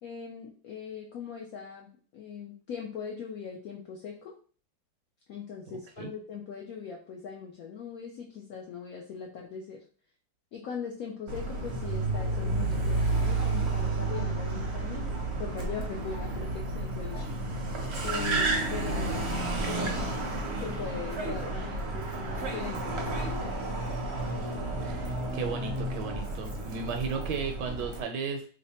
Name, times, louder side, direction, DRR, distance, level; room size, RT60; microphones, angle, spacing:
voice 1, 0.0-4.3 5.3-9.8 10.5-15.1 15.4-17.3 18.0-19.3 19.6-20.0 20.6-23.7, left 6 dB, 70° left, 0 dB, 0.8 m, -40 dB
Car, 11.3-28.0, right 2 dB, 55° right, 0.7 m, -31 dB
voice 2, 24.8-28.5, right 5 dB, 75° right, 5 dB, 1.1 m, -35 dB
3.2 x 2.1 x 4.1 m, 0.41 s
omnidirectional pair, 2.0 m